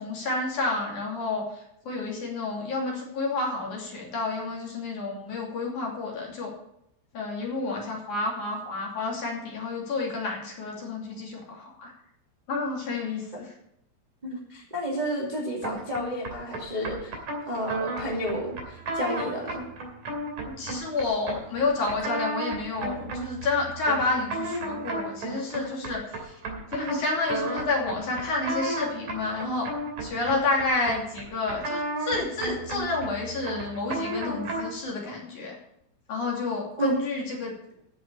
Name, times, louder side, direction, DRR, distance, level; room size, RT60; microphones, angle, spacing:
voice 1, 0.0-1.5 1.9-6.5 7.1-11.9 12.5-13.5 20.6-26.3 26.7-29.7 30.0-35.6 36.1-37.5, left 3 dB, 45° left, -2 dB, 3.9 m, -30 dB
voice 2, 14.2-17.1 17.4-19.6 36.8-37.0, equal, 25° right, -3 dB, 1.0 m, -31 dB
sound 1, 15.6-34.8, right 2 dB, 45° right, 3.5 m, -34 dB
11.5 x 7.0 x 8.6 m, 0.76 s
omnidirectional pair, 5.6 m